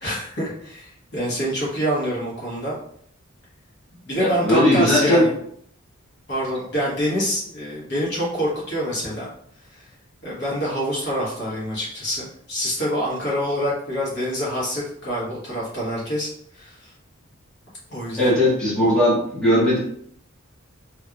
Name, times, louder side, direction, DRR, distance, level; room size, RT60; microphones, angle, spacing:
voice 1, 0.0-2.8 4.0-5.3 6.3-9.3 9.7-9.9 10.2-16.3 16.5-16.9 17.9-18.3, equal, 55° left, -6 dB, 1.2 m, -26 dB
voice 2, 4.2-5.3 18.2-19.8, left 1 dB, 5° left, -9 dB, 1.0 m, -18 dB
3.2 x 2.9 x 2.4 m, 0.65 s
head